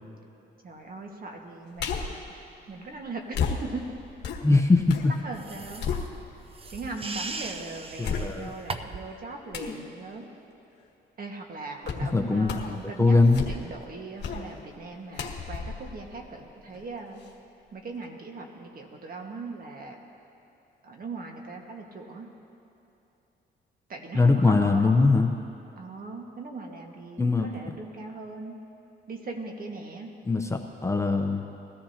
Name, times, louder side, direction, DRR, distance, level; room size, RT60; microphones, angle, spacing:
voice 1, 0.6-2.4 2.7-3.8 4.7-4.8 5.2-5.8 6.7-10.3 11.2-13.2 13.5-17.2 17.7-20.0 20.8-22.3 23.9-25.1 25.8-28.6 29.1-30.1, right 3 dB, 45° right, 2 dB, 1.7 m, -39 dB
sound 1, 1.8-2.2 3.3-5.1 5.5-6.6 7.1-7.2 8.0-8.7 9.5-9.8 11.8-12.1 12.4-12.8 13.2-13.8 14.2-14.5 15.1-16.8 17.2-17.3, left 6 dB, 60° left, 1.5 m, -33 dB
voice 2, 4.4-4.8 8.0-8.5 12.1-13.4 24.1-25.3 27.2-27.7 30.3-31.4, left 3 dB, 15° left, 3 dB, 0.9 m, -22 dB
sound 2, 5.3-9.1, right 3 dB, 30° right, 0.6 m, -39 dB
20.5 x 14.0 x 2.9 m, 2.9 s
cardioid pair, 90°, 20 cm